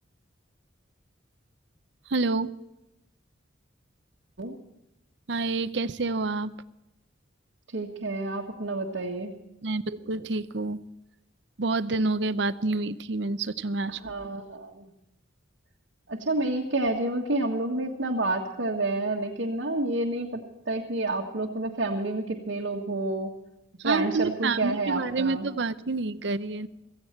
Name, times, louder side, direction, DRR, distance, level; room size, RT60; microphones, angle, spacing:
voice 1, 2.1-2.5 5.3-6.5 9.6-10.8 11.6-14.0 23.8-26.7, right 3 dB, 65° right, 14 dB, 0.7 m, -28 dB
voice 2, 7.7-9.4 14.0-14.8 16.1-20.4 20.6-23.3 23.8-25.5, right 2 dB, 85° right, -2 dB, 1.6 m, -29 dB
17.0 x 15.5 x 4.4 m, 0.91 s
head